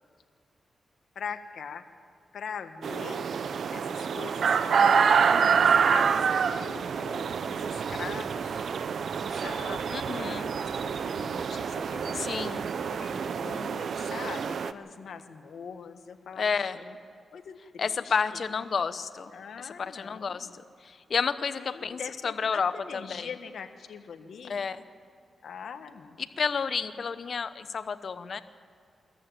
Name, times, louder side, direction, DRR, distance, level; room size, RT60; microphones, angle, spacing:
voice 1, 1.1-1.8 2.3-3.3 3.7-5.2 5.6-8.7 9.2-12.2 12.9-17.0 17.3-18.1 19.3-20.5 21.5-24.6 25.4-26.3, left 6 dB, 75° left, 8 dB, 1.3 m, -42 dB
sound 1, 2.8-14.7, right 6 dB, 70° right, 0.7 m, -27 dB
voice 2, 5.3-5.7 9.9-10.5 12.1-12.7 16.4-16.8 17.8-19.3 19.6-20.5 20.8-23.3 24.4-24.8 26.4-28.4, left 5 dB, 60° left, 12 dB, 0.9 m, -31 dB
22.5 x 14.0 x 9.0 m, 2.3 s
cardioid pair, 70°, 0 cm